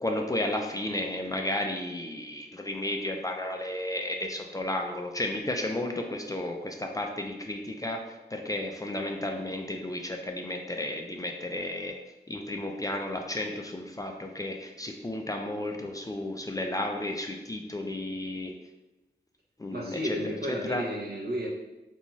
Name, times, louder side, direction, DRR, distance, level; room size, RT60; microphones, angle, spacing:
voice 1, 0.0-12.0 12.3-18.5 19.6-20.8, left 1 dB, 20° left, 2 dB, 0.3 m, -33 dB
voice 2, 19.7-21.5, equal, 65° right, -2 dB, 0.7 m, -33 dB
2.6 x 2.3 x 2.9 m, 1.0 s
cardioid pair, 45°, 18 cm